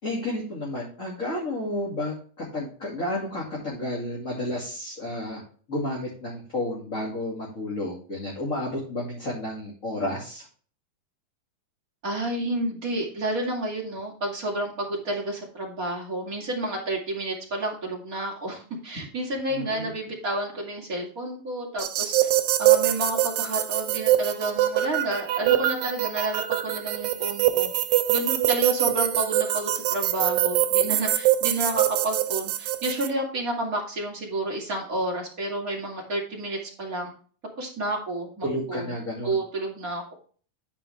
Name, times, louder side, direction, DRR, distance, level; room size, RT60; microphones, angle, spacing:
voice 1, 0.0-5.4 5.7-10.5 19.5-19.9 38.4-39.3, left 1 dB, 25° left, -4 dB, 2.2 m, -31 dB
voice 2, 12.0-22.3 22.6-27.7 28.1-37.1 37.6-40.1, right 1 dB, 25° right, -2 dB, 2.5 m, -30 dB
sound 1, 21.8-33.1, right 13 dB, 90° right, 2.6 m, -24 dB
11.5 x 5.2 x 3.3 m, 0.42 s
omnidirectional pair, 4.0 m